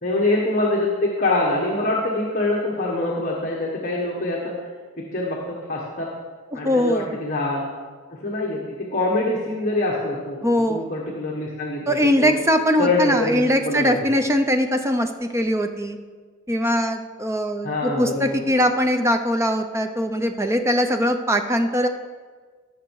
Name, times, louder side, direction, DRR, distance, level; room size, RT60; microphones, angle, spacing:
voice 1, 0.0-4.5 5.1-6.1 6.5-7.7 8.1-10.4 10.7-12.4 12.8-14.0 17.6-18.4, left 2 dB, 40° left, -3 dB, 1.4 m, -24 dB
voice 2, 6.5-7.1 10.4-10.9 11.9-16.0 16.5-21.9, equal, 15° right, 6 dB, 0.6 m, -21 dB
16.0 x 6.6 x 4.8 m, 1.5 s
head